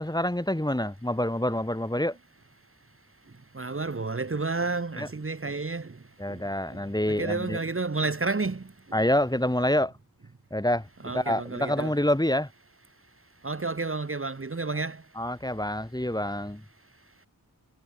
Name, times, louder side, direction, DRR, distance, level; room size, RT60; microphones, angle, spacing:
voice 1, 0.0-2.2 5.0-5.1 6.2-7.6 8.9-9.9 10.5-10.9 11.1-12.5 15.2-16.6, left 1 dB, 10° left, 3.6 m, -27 dB
voice 2, 3.5-6.0 6.3-6.4 6.7-6.8 7.1-8.7 11.0-12.0 13.4-15.0, right 3 dB, 35° right, 1.4 m, -30 dB
wide cardioid pair, 85°, 37 cm